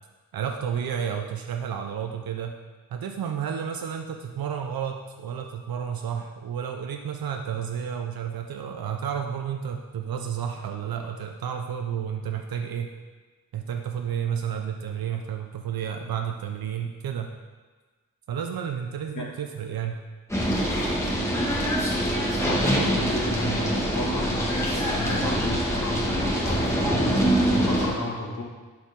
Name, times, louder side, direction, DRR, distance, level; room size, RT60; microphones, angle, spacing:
voice 1, 0.3-2.5 2.9-12.9 13.5-17.3 18.3-20.0, right 8 dB, 80° right, 4 dB, 0.6 m, -31 dB
sound 1, 20.3-27.9, equal, 10° left, 1.6 m, -24 dB
voice 2, 22.5-28.4, left 2 dB, 60° left, -3 dB, 1.8 m, -33 dB
11.0 x 4.6 x 3.6 m, 1.4 s
wide cardioid pair, 100°, 35 cm